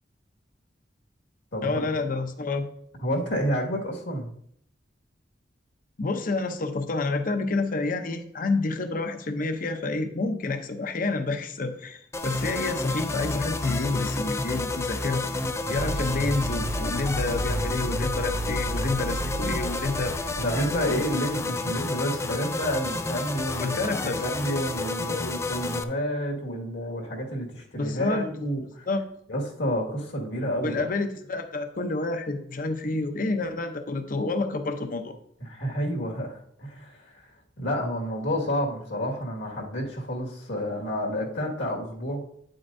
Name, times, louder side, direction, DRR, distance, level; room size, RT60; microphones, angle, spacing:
voice 1, 1.6-2.7 6.0-15.3 15.7-20.2 23.6-24.2 27.8-28.3 28.9-29.0 30.6-35.1, left 3 dB, 50° left, 8 dB, 0.7 m, -29 dB
voice 2, 3.0-4.3 20.4-28.9 29.3-30.9 35.4-42.2, equal, 75° left, -1 dB, 2.0 m, -30 dB
sound 1, 12.1-25.8, left 2 dB, 15° left, 0.4 m, -30 dB
sound 2, 13.8-21.6, right 2 dB, 60° right, 0.4 m, -34 dB
9.7 x 7.7 x 2.7 m, 0.68 s
head